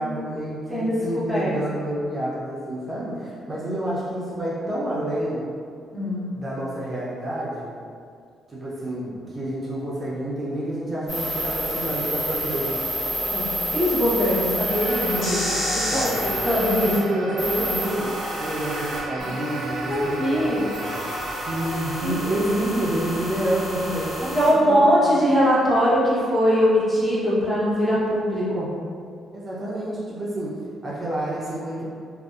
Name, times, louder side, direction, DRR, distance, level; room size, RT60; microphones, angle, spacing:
voice 1, 0.0-5.5 6.4-7.8 8.5-12.8 15.9-16.2 16.8-20.9 21.4-25.3 29.3-31.8, right 1 dB, 30° right, -7 dB, 0.5 m, -28 dB
voice 2, 0.7-1.5 5.9-6.3 13.3-15.5 15.7-16.9 18.7-18.8 19.2-19.3 19.9-20.6 21.3-22.2 24.3-28.7, equal, 20° left, -9 dB, 0.9 m, -22 dB
sound 1, 11.1-17.0 17.4-24.5, equal, 60° left, 1.5 m, -29 dB
sound 2, 14.5-25.0, right 2 dB, 85° right, 0.3 m, -35 dB
2.5 x 2.0 x 2.4 m, 2.2 s
cardioid pair, 90°, 0 cm